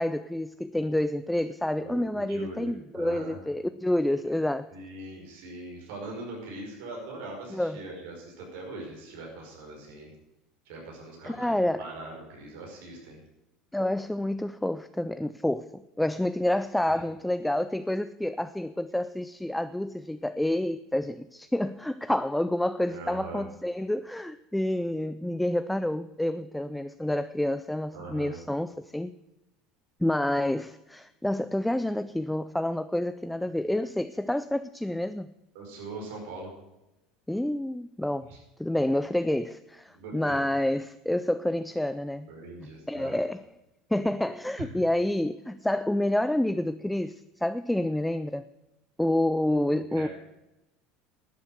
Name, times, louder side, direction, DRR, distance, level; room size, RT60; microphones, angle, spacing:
voice 1, 0.0-4.7 7.5-7.8 11.2-11.8 13.7-29.1 30.0-35.3 37.3-38.3 38.6-42.3 42.6-43.5 43.9-48.5 49.0-50.1, left 1 dB, 5° left, 0.3 m, -28 dB
voice 2, 1.8-3.4 4.2-4.4 4.7-10.1 10.7-13.2 16.9-17.0 22.9-23.5 27.9-28.4 35.5-36.5 38.3-38.4 39.9-40.4 42.3-43.2 44.6-44.7 49.7-50.1, right 2 dB, 85° right, 5.3 m, -41 dB
12.0 x 8.4 x 7.9 m
cardioid pair, 140°, 0 cm